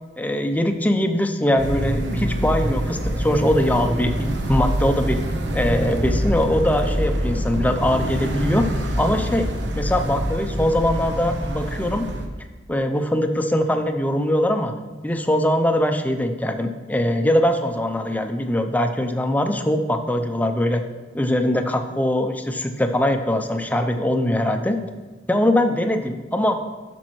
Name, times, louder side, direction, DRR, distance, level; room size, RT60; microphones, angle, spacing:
voice 1, 0.2-5.2 5.5-8.7 9.0-9.5 9.8-12.1 12.7-14.7 15.0-20.8 21.1-24.8 25.3-26.6, left 1 dB, 10° left, 6 dB, 0.5 m, -22 dB
sound 1, 1.6-12.3, right 1 dB, 70° right, 0.9 m, -25 dB
12.0 x 6.1 x 3.1 m, 1.3 s
head